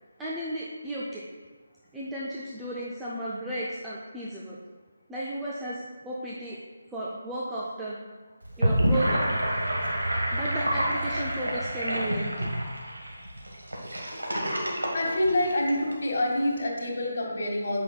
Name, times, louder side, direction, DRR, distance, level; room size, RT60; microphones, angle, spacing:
voice 1, 0.2-1.3 1.9-4.6 5.1-6.6 6.9-8.0 8.6-9.3 10.3-12.5, right 1 dB, 5° right, -7 dB, 0.5 m, -34 dB
Gurgling / Sink (filling or washing), 8.4-15.9, right 1 dB, 80° right, 1.4 m, -28 dB
voice 2, 14.9-17.8, left 1 dB, 50° left, -3 dB, 1.8 m, -26 dB
7.9 x 5.7 x 2.3 m, 1.4 s
figure-of-eight pair, 155°, 0 cm